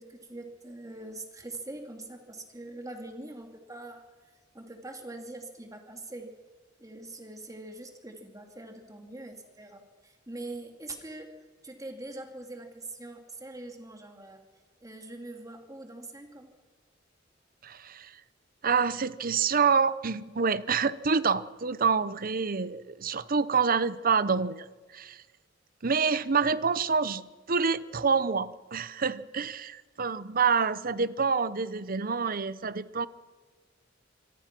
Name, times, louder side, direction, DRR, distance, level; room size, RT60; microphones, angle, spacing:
voice 1, 0.0-4.0 4.5-6.4 6.8-14.4 14.8-16.5, right 2 dB, 20° right, 4 dB, 2.6 m, -43 dB
voice 2, 17.6-18.1 18.6-24.7 24.9-25.2 25.8-33.1, right 5 dB, 50° right, 16 dB, 0.8 m, -27 dB
26.0 x 25.0 x 6.1 m, 1.4 s
head